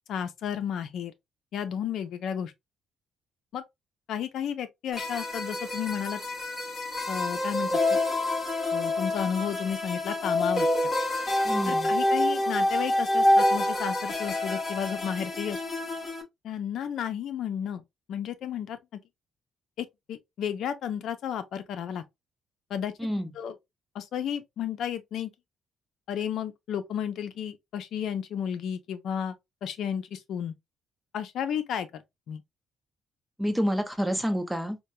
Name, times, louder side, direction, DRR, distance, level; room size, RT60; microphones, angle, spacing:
voice 1, 0.1-1.1 1.5-2.5 3.5-3.6 4.1-6.2 7.1-8.0 8.7-10.7 11.7-15.6 16.4-17.8 18.1-19.0 19.8-22.0 22.7-22.9 23.3-23.6 23.9-25.3 26.1-29.3 29.6-30.5 31.1-32.4, left 8 dB, 75° left, 0.6 m, -32 dB
sound 1, 4.9-16.2, left 1 dB, 35° left, 1.5 m, -27 dB
voice 2, 11.4-11.9 23.0-23.3 33.4-34.8, equal, 5° right, 0.9 m, -28 dB
4.4 x 2.3 x 2.7 m
cardioid pair, 90°, 0 cm